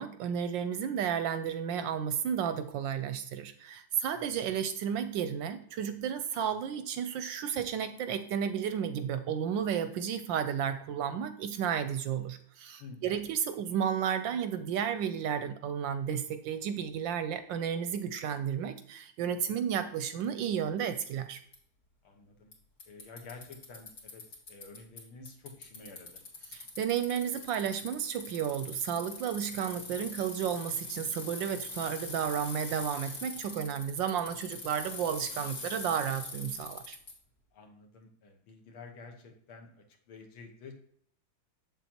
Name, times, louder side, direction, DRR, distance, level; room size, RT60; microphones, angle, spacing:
voice 1, 0.0-21.4 26.5-37.0, right 8 dB, 75° right, 10 dB, 1.1 m, -32 dB
voice 2, 12.8-13.3 22.0-22.5 22.9-24.2 24.5-26.2 37.5-40.8, left 4 dB, 80° left, 3 dB, 2.0 m, -50 dB
Bicycle, 21.5-21.6 22.5-22.6 22.8-25.0 25.2-37.1, left 3 dB, 45° left, 2.4 m, -43 dB
7.4 x 7.1 x 2.9 m, 0.64 s
omnidirectional pair, 2.3 m